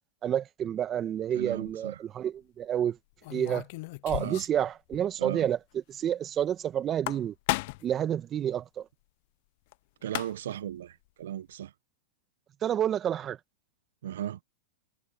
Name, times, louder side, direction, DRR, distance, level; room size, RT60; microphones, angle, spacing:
voice 1, 0.2-3.0 3.3-3.6 4.0-7.3 7.8-8.9 12.6-13.4, right 10 dB, 30° right, 1.8 m, -29 dB
voice 2, 1.3-2.0 4.2-4.4 5.2-5.5 10.0-11.7 14.0-14.4, right 11 dB, 75° right, 0.9 m, -36 dB
sound 1, 1.4-1.7 3.2-4.6 4.9-5.0 5.3-5.4 6.8-8.0 9.7-9.8 10.0-10.6, left 23 dB, 55° left, 0.4 m, -34 dB
hypercardioid pair, 120°, 0 cm